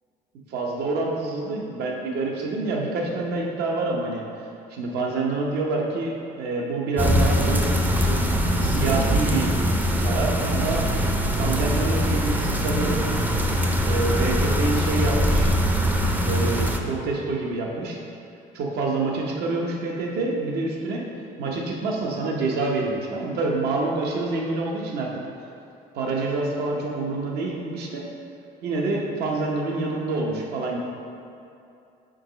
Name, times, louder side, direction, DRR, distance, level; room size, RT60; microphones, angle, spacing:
voice 1, 0.5-4.2 4.7-7.6 7.9-8.3 8.6-9.5 10.0-10.8 11.4-13.1 13.8-15.5 16.2-18.0 18.5-21.1 21.4-25.1 25.9-28.1 28.6-30.8, right 3 dB, 75° right, -1 dB, 0.9 m, -27 dB
sound 1, 7.0-16.8, equal, 10° right, 0.4 m, -22 dB
5.1 x 3.9 x 5.0 m, 2.6 s
cardioid pair, 110°, 17 cm